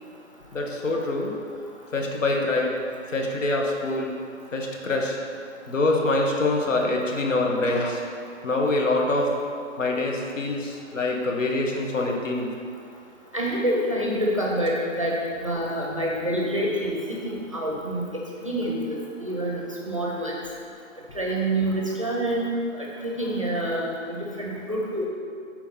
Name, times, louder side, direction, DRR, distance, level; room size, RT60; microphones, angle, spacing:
voice 1, 0.5-1.4 1.9-2.8 3.1-4.1 4.5-5.2 5.7-8.0 8.4-9.4 9.8-12.5, left 2 dB, 70° left, 0 dB, 1.3 m, -25 dB
voice 2, 13.3-18.0 18.4-20.4 21.1-22.5 22.8-25.1, right 1 dB, 25° right, -3 dB, 0.6 m, -27 dB
8.3 x 4.6 x 4.0 m, 2.3 s
hypercardioid pair, 180°, 39 cm